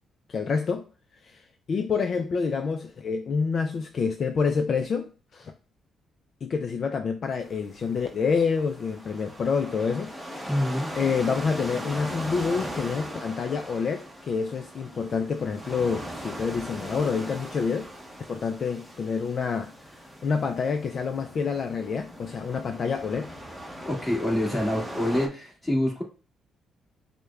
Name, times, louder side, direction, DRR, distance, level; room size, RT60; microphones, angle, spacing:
voice 1, 0.3-0.9 1.2-1.4 1.7-5.5 6.4-10.5 10.9-17.9 18.3-23.3, left 5 dB, 50° left, 0.3 m, -28 dB
sound 1, 7.4-25.3, equal, 5° right, 0.8 m, -39 dB
voice 2, 10.5-11.0 23.8-26.0, left 1 dB, 10° left, 1.7 m, -26 dB
6.4 x 2.2 x 2.3 m
cardioid pair, 90°, 0 cm